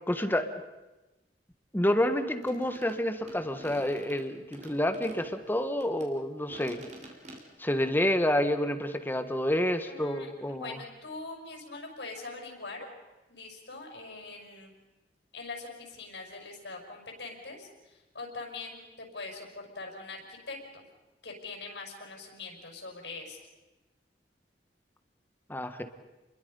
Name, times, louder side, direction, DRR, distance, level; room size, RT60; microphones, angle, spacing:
voice 1, 0.1-0.5 1.7-6.8 7.6-10.8 25.5-25.8, left 1 dB, 10° left, 8 dB, 1.4 m, -28 dB
sound 1, 2.4-6.1 6.5-7.4, right 1 dB, 45° right, 3.8 m, -48 dB
voice 2, 9.9-12.9 13.3-14.8 15.3-20.8 21.2-23.4, left 3 dB, 80° left, 2 dB, 5.9 m, -43 dB
29.5 x 22.0 x 5.5 m, 1.1 s
head